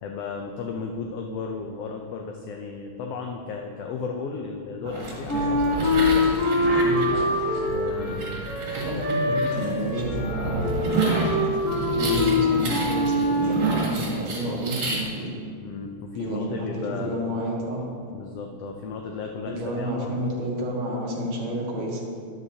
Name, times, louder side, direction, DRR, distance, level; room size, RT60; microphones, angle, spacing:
voice 1, 0.0-5.6 7.7-8.2 8.8-9.1 15.6-17.2 18.1-20.1, left 5 dB, 75° left, 2 dB, 1.5 m, -34 dB
sound 1, 4.8-15.0, right 2 dB, 85° right, 3.6 m, -30 dB
Wind instrument woodwind instrument, 5.3-13.7, left 2 dB, 35° left, 3.3 m, -24 dB
voice 2, 6.7-7.1 8.7-11.3 11.9-15.3 16.2-17.9 19.5-22.0, equal, 65° right, -3 dB, 2.8 m, -30 dB
12.0 x 11.5 x 2.8 m, 2.3 s
omnidirectional pair, 3.3 m